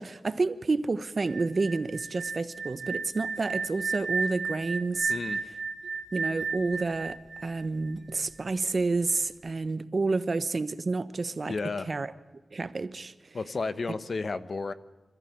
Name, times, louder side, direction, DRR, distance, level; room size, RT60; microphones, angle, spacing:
voice 1, 0.0-5.1 6.1-11.5 11.9-12.1 12.5-13.1, right 3 dB, 45° right, 1.1 m, -29 dB
sound 1, 1.3-8.2, right 4 dB, 80° right, 1.2 m, -34 dB
voice 2, 5.1-5.4 11.4-11.9 13.3-14.7, left 4 dB, 55° left, 1.1 m, -32 dB
27.0 x 15.0 x 8.7 m
wide cardioid pair, 115°, 0 cm